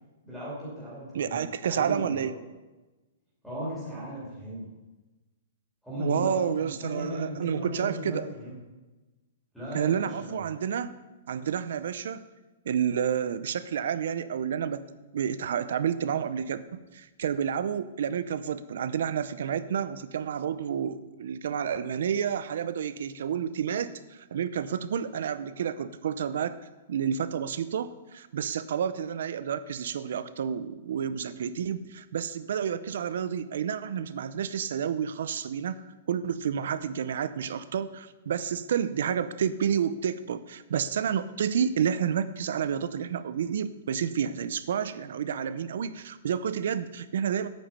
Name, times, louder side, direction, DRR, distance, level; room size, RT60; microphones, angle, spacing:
voice 1, 0.2-2.3 3.4-4.7 5.8-6.4 6.6-8.6 9.5-10.5, right 1 dB, ahead, -9 dB, 2.8 m, -36 dB
voice 2, 1.1-2.3 6.0-8.2 9.7-10.9 11.3-12.3 12.7-14.8 15.1-26.5 26.9-47.5, right 8 dB, 55° right, 14 dB, 0.6 m, -30 dB
8.9 x 8.7 x 5.6 m, 1.1 s
hypercardioid pair, 180°, 0 cm